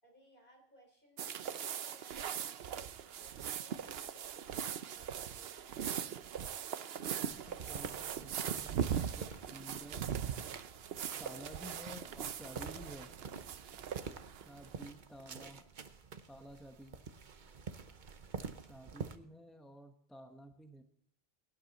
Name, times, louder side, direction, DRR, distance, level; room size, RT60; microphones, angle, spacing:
voice 1, 0.0-6.0 14.7-15.1, right 1 dB, 55° left, 2 dB, 4.2 m, -64 dB
sound 1, 1.2-14.8, right 8 dB, 75° right, 0.9 m, -40 dB
voice 2, 7.1-10.1 11.2-13.1 14.4-15.6 16.3-17.0 18.7-20.8, equal, ahead, 5 dB, 1.0 m, -52 dB
sound 2, 7.2-19.2, right 5 dB, 50° right, 1.0 m, -48 dB
18.0 x 10.5 x 4.1 m, 0.71 s
omnidirectional pair, 1.1 m